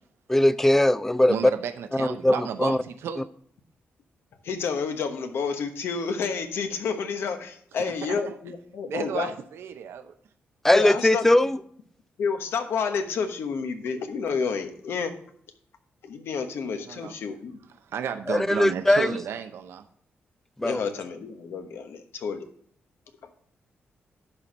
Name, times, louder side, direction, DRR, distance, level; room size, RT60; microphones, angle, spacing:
voice 1, 0.3-1.4 2.0-2.8 10.6-11.6 18.3-19.2 20.6-20.8, left 1 dB, 10° left, 0.3 m, -20 dB
voice 2, 1.3-3.3 7.8-8.4 8.9-10.1 16.9-17.2 17.9-19.8, right 8 dB, 85° right, 0.7 m, -33 dB
voice 3, 4.4-9.3 10.7-11.2 12.2-15.1 16.0-17.6 20.6-22.5, left 5 dB, 75° left, 1.1 m, -30 dB
11.0 x 4.5 x 5.1 m
wide cardioid pair, 140°, 4 cm